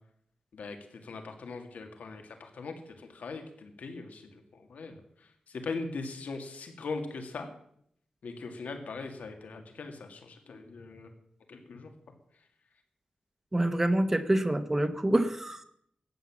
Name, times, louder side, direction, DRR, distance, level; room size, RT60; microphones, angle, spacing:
voice 1, 0.5-7.5 8.2-11.1 11.5-11.9, left 3 dB, 80° left, 5 dB, 2.0 m, -40 dB
voice 2, 13.5-15.6, right 1 dB, 15° right, 10 dB, 0.9 m, -26 dB
13.0 x 8.9 x 7.3 m, 0.69 s
wide cardioid pair, 155°, 3 cm